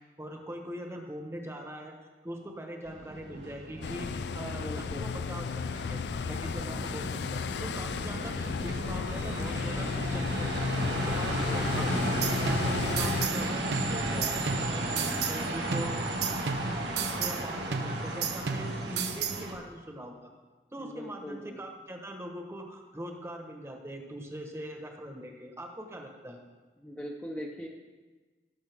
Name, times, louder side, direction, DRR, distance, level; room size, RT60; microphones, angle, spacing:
voice 1, 0.2-1.9 2.2-6.0 6.3-10.5 10.9-12.0 12.4-16.1 16.6-16.8 17.1-20.1 20.7-26.4, right 1 dB, 15° right, 2 dB, 1.2 m, -41 dB
sound 1, 2.8-19.5, right 1 dB, 90° right, 1.7 m, -35 dB
sound 2, 3.8-13.3, left 5 dB, 70° left, 0.4 m, -33 dB
voice 2, 4.5-5.1 11.3-12.0 20.8-21.6 26.8-27.7, equal, 10° left, -1 dB, 0.8 m, -41 dB
sound 3, 11.8-13.4 13.7-15.4 15.7-17.4 17.7-19.4, right 5 dB, 70° right, 0.8 m, -34 dB
18.0 x 6.6 x 3.6 m, 1.3 s
head